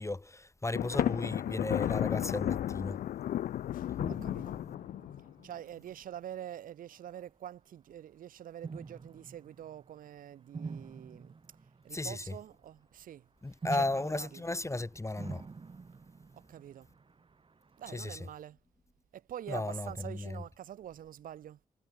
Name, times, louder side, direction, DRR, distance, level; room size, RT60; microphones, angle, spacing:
voice 1, 0.0-3.0 11.9-12.2 13.4-15.4 17.9-18.2 19.5-20.4, left 2 dB, 20° left, 1.3 m, -35 dB
Thunder, 0.8-5.3, left 12 dB, 80° left, 0.6 m, -33 dB
sound 1, 4.0-6.2 6.9-7.3 8.6-12.8 13.6-18.0, right 4 dB, 40° right, 1.1 m, -47 dB
voice 2, 4.1-4.6 5.4-11.4 11.8-13.3 13.7-14.5 16.3-16.9 17.8-18.6 19.1-21.6, right 11 dB, 85° right, 3.9 m, -45 dB
supercardioid pair, 45°, 14 cm